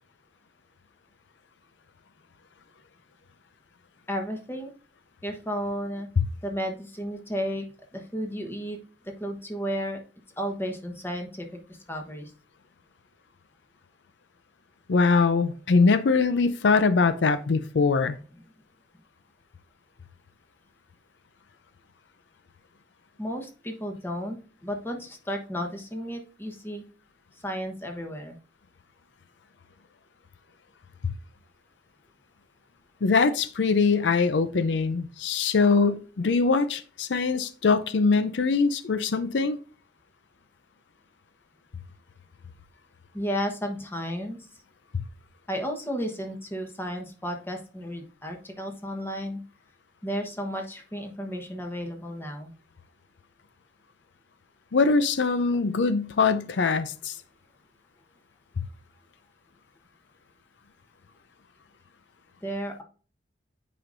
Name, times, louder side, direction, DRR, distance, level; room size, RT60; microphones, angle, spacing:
voice 1, 4.1-4.7 5.2-6.1 6.4-7.6 7.9-8.8 9.2-10.0 10.4-12.3 23.2-26.8 27.4-28.4 43.1-44.4 45.5-49.4 50.0-52.5 62.4-62.8, equal, 15° left, 1.1 m, -33 dB
voice 2, 14.9-18.2 33.0-39.6 54.7-57.2, left 4 dB, 85° left, 0.5 m, -22 dB
8.8 x 5.0 x 2.6 m
head